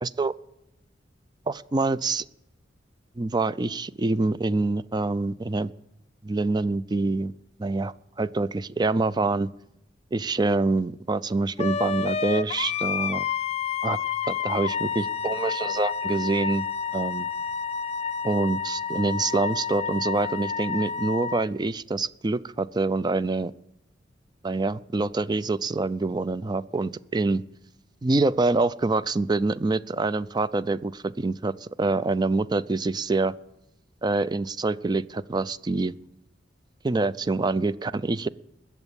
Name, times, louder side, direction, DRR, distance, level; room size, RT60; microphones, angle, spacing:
voice 1, 0.0-0.3 1.5-2.3 3.2-5.7 6.2-7.3 7.6-9.5 10.1-13.2 13.8-14.0 14.3-16.7 16.9-17.3 18.2-23.5 24.4-27.4 28.0-33.3 34.0-35.9 36.8-38.3, right 3 dB, 25° right, 16 dB, 0.4 m, -26 dB
Wind instrument woodwind instrument, 11.6-21.5, left 6 dB, 35° left, 0.4 m, -29 dB
20.5 x 7.3 x 7.1 m, 0.86 s
head